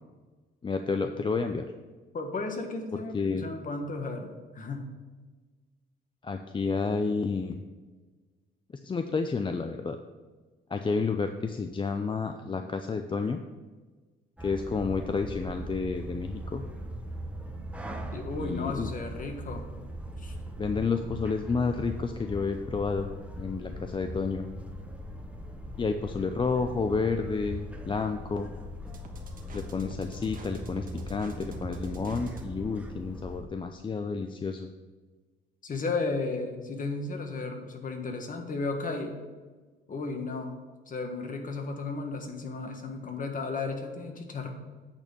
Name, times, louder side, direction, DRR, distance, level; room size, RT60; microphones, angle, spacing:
voice 1, 0.6-1.7 2.9-3.5 6.2-7.6 8.8-10.0 10.7-13.4 14.4-16.6 18.4-18.9 20.6-23.1 23.4-24.5 25.8-28.5 29.5-34.7, left 4 dB, 25° left, 7 dB, 0.5 m, -30 dB
voice 2, 2.1-4.3 4.5-4.9 18.1-19.6 20.2-20.3 35.6-39.1 39.9-40.5 40.9-44.5, left 3 dB, 40° left, 4 dB, 1.5 m, -34 dB
sound 1, 14.4-33.4, equal, 5° right, 1.0 m, -40 dB
sound 2, 28.9-32.5, right 2 dB, 45° right, 1.3 m, -44 dB
8.8 x 4.3 x 6.8 m, 1.3 s
cardioid pair, 90°, 20 cm